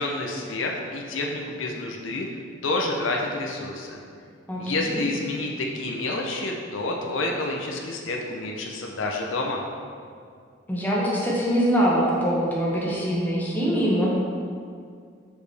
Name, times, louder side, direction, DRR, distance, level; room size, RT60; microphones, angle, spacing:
voice 1, 0.0-2.3 2.6-4.0 4.6-9.6, left 2 dB, 85° left, 0 dB, 0.7 m, -29 dB
voice 2, 4.5-5.0 10.7-14.1, equal, 10° left, -6 dB, 1.2 m, -23 dB
6.4 x 5.0 x 3.4 m, 2.2 s
head